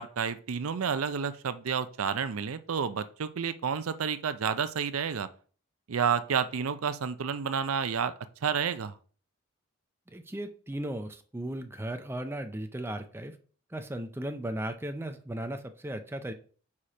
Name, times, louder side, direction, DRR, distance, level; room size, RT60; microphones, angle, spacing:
voice 1, 0.0-5.3 5.9-8.1 8.4-8.9, right 6 dB, 90° right, 12 dB, 0.5 m, -30 dB
voice 2, 10.1-13.4 13.7-16.3, right 1 dB, 10° right, 7 dB, 0.5 m, -36 dB
4.8 x 4.3 x 5.0 m, 0.42 s
head